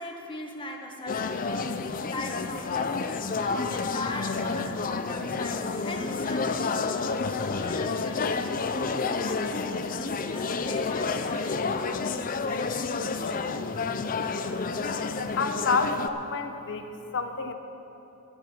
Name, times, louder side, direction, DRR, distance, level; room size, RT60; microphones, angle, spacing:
voice 1, 0.0-7.0 7.3-12.1 12.4-13.4, left 2 dB, 25° left, 1 dB, 1.4 m, -39 dB
sound 1, 1.1-16.1, left 4 dB, 40° left, 0.5 m, -30 dB
voice 2, 15.4-16.8 17.1-17.5, left 4 dB, 55° left, 7 dB, 0.9 m, -28 dB
16.0 x 12.5 x 4.5 m, 2.9 s
head